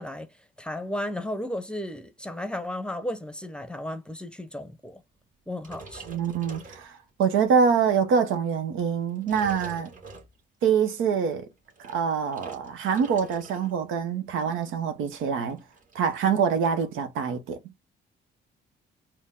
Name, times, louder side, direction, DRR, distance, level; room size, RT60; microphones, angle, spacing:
voice 1, 0.0-5.0 5.5-6.2, left 1 dB, 5° left, 0.7 m, -34 dB
sound 1, 5.6-7.3 7.9-8.1 8.9-10.7 11.5-13.8 14.0-14.4 14.7-14.8 15.0-16.1, right 3 dB, 40° right, 1.6 m, -46 dB
voice 2, 6.1-6.9 7.2-9.9 10.6-11.5 11.8-15.6 15.9-17.6, right 6 dB, 90° right, 0.8 m, -25 dB
4.4 x 2.1 x 3.5 m
cardioid pair, 90°, 20 cm